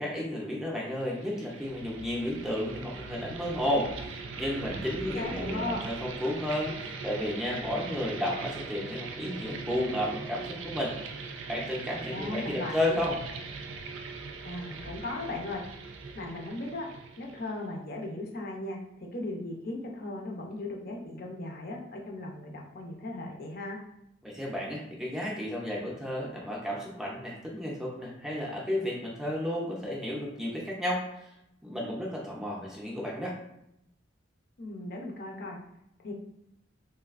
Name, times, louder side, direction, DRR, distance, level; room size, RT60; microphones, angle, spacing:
voice 1, 0.0-10.9 11.5-13.1 24.2-31.3 31.6-33.4, left 1 dB, 5° right, -4 dB, 0.5 m, -32 dB
sound 1, 1.0-17.7, right 4 dB, 90° right, 0.4 m, -41 dB
voice 2, 4.9-5.9 12.1-13.0 14.4-15.6 16.1-16.9 17.2-23.8 34.6-35.6 36.0-36.1, left 2 dB, 55° left, 0 dB, 0.6 m, -37 dB
3.1 x 2.6 x 2.4 m, 0.79 s
head